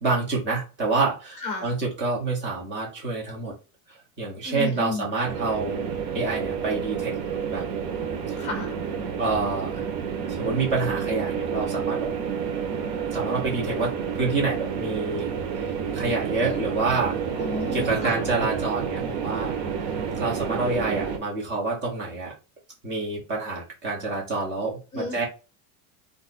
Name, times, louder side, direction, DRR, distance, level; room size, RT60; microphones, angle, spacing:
voice 1, 0.0-3.5 4.2-7.2 7.5-7.6 8.3-8.4 9.2-9.8 10.4-12.1 13.1-15.3 15.6-17.2 17.7-19.9 20.1-22.3 22.8-25.2, right 3 dB, 25° right, 1.0 m, -27 dB
voice 2, 1.4-1.7 4.4-5.1 8.4-8.8 17.3-18.2 24.9-25.2, left 3 dB, 15° left, 0.9 m, -33 dB
sound 1, 5.2-21.2, right 7 dB, 80° right, 0.8 m, -30 dB
2.5 x 2.1 x 4.0 m
supercardioid pair, 160°, 48 cm